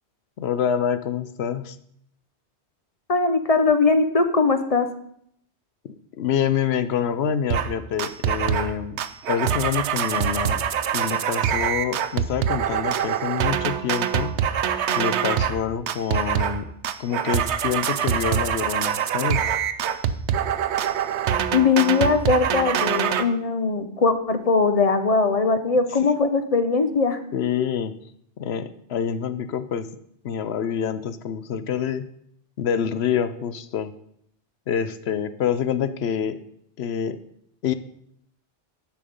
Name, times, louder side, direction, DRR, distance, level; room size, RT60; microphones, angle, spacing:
voice 1, 0.4-1.8 5.8-9.0 9.3-10.6 10.9-14.4 15.0-16.7 17.0-19.4 27.3-27.9 28.4-29.9 30.2-32.1 32.6-33.9 34.7-36.4 36.8-37.2 37.6-37.7, left 8 dB, 70° left, 12 dB, 0.9 m, -26 dB
voice 2, 3.1-4.9 21.5-27.2, left 4 dB, 40° left, 9 dB, 0.7 m, -20 dB
sound 1, 7.5-7.7 8.0-8.7 9.0-15.6 15.9-16.6 16.8-23.2, right 8 dB, 80° right, 1.0 m, -24 dB
10.5 x 7.0 x 5.1 m, 0.70 s
omnidirectional pair, 1.1 m